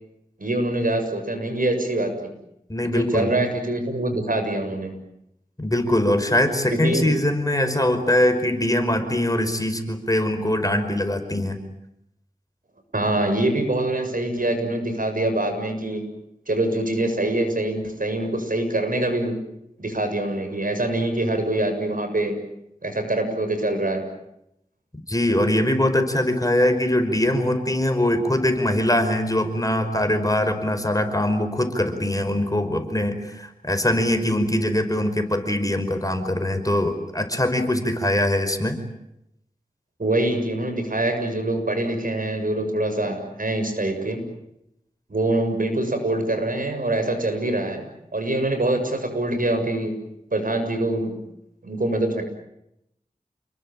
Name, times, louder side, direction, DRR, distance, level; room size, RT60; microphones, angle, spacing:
voice 1, 0.4-2.1 2.8-4.9 6.8-7.1 12.9-16.0 16.5-19.3 19.8-22.4 22.8-24.1 40.0-44.2 45.1-47.9 48.1-49.9 50.3-51.1 51.6-52.2, right 1 dB, 75° right, 6 dB, 7.1 m, -24 dB
voice 2, 2.7-3.3 5.6-11.6 25.1-38.8, left 1 dB, 25° left, 8 dB, 5.3 m, -22 dB
29.5 x 22.0 x 9.0 m, 0.81 s
wide cardioid pair, 45°, 14 cm